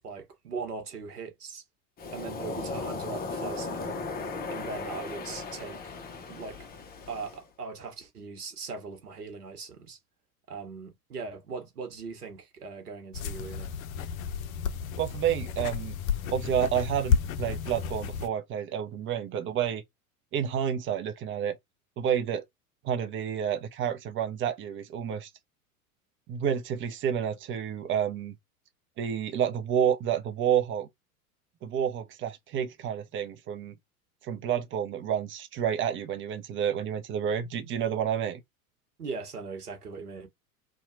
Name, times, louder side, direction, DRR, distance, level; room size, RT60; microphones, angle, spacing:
voice 1, 0.0-1.6 2.1-4.0 4.5-5.9 6.3-6.7 7.1-10.0 10.5-13.7 39.0-40.3, right 4 dB, 90° right, 0.9 m, -40 dB
Waves surf, 2.0-7.4, left 3 dB, 20° left, 0.7 m, -36 dB
sound 1, 13.1-18.3, left 7 dB, 65° left, 0.6 m, -31 dB
voice 2, 15.0-15.9 16.3-19.8 20.3-21.6 22.0-22.4 22.8-25.3 26.3-28.3 29.0-30.9 31.6-33.7 34.2-38.4, right 9 dB, 30° right, 0.5 m, -29 dB
2.7 x 2.3 x 2.5 m
figure-of-eight pair, 80°, 45 cm